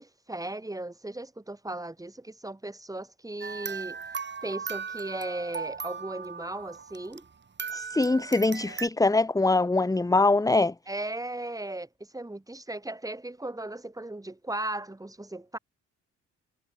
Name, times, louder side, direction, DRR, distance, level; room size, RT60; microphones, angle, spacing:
voice 1, 0.0-4.0 4.4-7.3 10.9-15.6, right 2 dB, 10° right, 5.5 m, -37 dB
sound 1, 3.4-7.3 7.6-8.9, right 5 dB, 35° right, 3.3 m, -38 dB
voice 2, 7.7-10.7, left 3 dB, 10° left, 1.2 m, -23 dB
cardioid pair, 90°, 30 cm